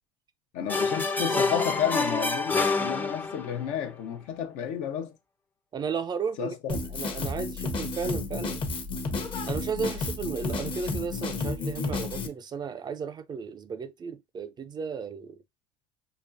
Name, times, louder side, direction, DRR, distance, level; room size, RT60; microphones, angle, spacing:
voice 1, 0.5-5.1 6.4-6.6, left 9 dB, 65° left, 0.8 m, -31 dB
sound 1, 0.7-3.6, left 3 dB, 15° left, 0.6 m, -27 dB
voice 2, 5.7-8.6 9.5-15.3, right 6 dB, 30° right, 0.5 m, -34 dB
Drum kit, 6.7-12.3, left 3 dB, 40° left, 0.9 m, -32 dB
5.1 x 2.3 x 2.6 m
hypercardioid pair, 75°, 14 cm